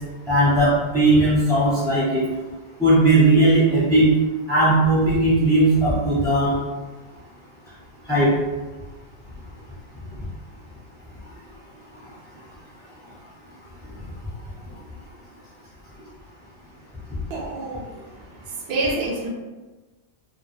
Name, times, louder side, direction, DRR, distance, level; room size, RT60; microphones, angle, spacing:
voice 1, 0.3-2.2 2.8-4.1 4.5-6.5 8.1-8.3, right 1 dB, 5° left, -10 dB, 0.5 m, -17 dB
voice 2, 17.3-19.3, right 2 dB, 70° right, -1 dB, 0.8 m, -28 dB
2.3 x 2.1 x 3.1 m, 1.2 s
omnidirectional pair, 1.1 m